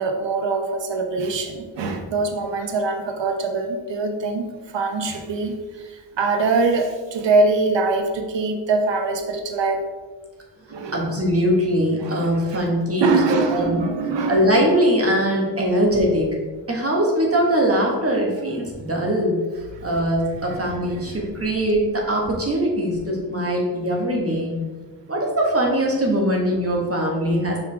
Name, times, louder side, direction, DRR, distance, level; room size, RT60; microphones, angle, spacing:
voice 1, 0.0-9.9 10.7-11.1 12.0-12.7 13.0-14.5 15.7-15.8 19.7-20.0 20.3-21.3, right 3 dB, 75° right, 5 dB, 0.9 m, -24 dB
voice 2, 10.9-13.1 13.5-13.8 14.3-16.4 16.7-19.4 19.8-24.6 25.1-27.6, equal, 30° right, -1 dB, 1.7 m, -21 dB
5.5 x 4.8 x 3.6 m, 1.3 s
cardioid pair, 55°, 44 cm